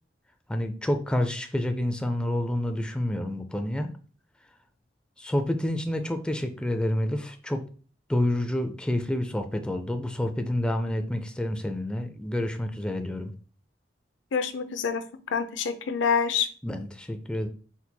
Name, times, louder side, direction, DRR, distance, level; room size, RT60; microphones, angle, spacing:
voice 1, 0.5-3.9 5.2-7.6 8.1-13.3 16.6-17.5, left 1 dB, 5° left, 6 dB, 0.3 m, -28 dB
voice 2, 14.3-16.5, left 6 dB, 85° left, 10 dB, 0.5 m, -27 dB
4.3 x 4.0 x 2.2 m, 0.40 s
head